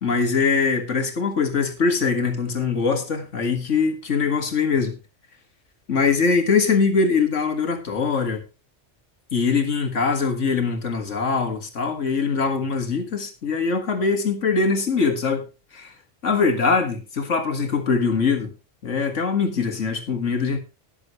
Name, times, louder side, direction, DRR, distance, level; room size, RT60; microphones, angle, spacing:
voice 1, 0.0-5.0 5.9-8.4 9.3-15.5 15.7-15.9 16.2-18.5 18.8-20.6, left 5 dB, 90° left, 2.1 m, -22 dB
19.5 x 7.0 x 3.1 m
omnidirectional pair, 1.2 m